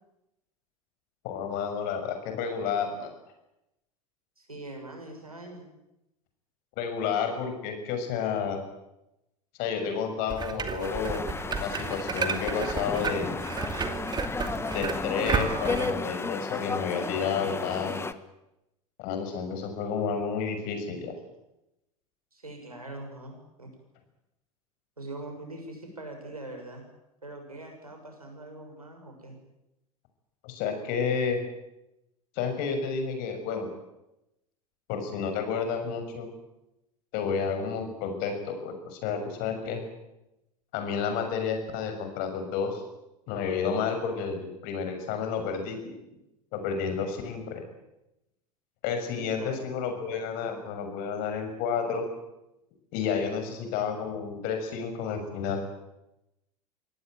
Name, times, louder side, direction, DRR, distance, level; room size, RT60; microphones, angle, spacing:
voice 1, 1.2-3.1 6.8-8.6 9.6-11.2 11.6-13.3 14.7-18.0 19.0-21.1 30.4-31.4 32.3-33.7 34.9-36.3 37.1-39.8 40.7-42.8 43.3-45.8 46.5-47.6 48.8-52.1 52.9-55.6, left 6 dB, 50° left, 6 dB, 6.4 m, -30 dB
voice 2, 4.4-5.7 22.3-23.7 25.0-26.9 27.2-29.4 49.2-49.6, right 2 dB, 90° right, 3 dB, 6.6 m, -42 dB
sound 1, 10.3-15.9, right 5 dB, 25° right, 2.5 m, -32 dB
sound 2, 10.8-18.1, left 4 dB, 15° left, 1.4 m, -34 dB
25.0 x 18.0 x 9.3 m, 0.91 s
figure-of-eight pair, 80°, 18 cm